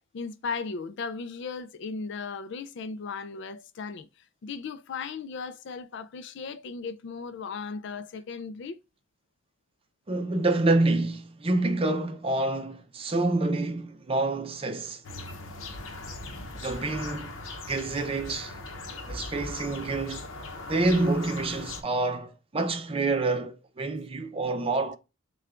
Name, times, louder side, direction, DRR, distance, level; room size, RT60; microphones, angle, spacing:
voice 1, 0.1-4.1 4.4-8.8, left 5 dB, 60° left, 0.4 m, -36 dB
voice 2, 10.1-15.0 16.6-17.3 17.7-18.5 19.1-20.3 20.7-25.0, right 2 dB, 30° right, 0.6 m, -27 dB
sound 1, 15.0-21.8, left 2 dB, 80° left, 0.8 m, -39 dB
6.5 x 2.3 x 2.4 m
head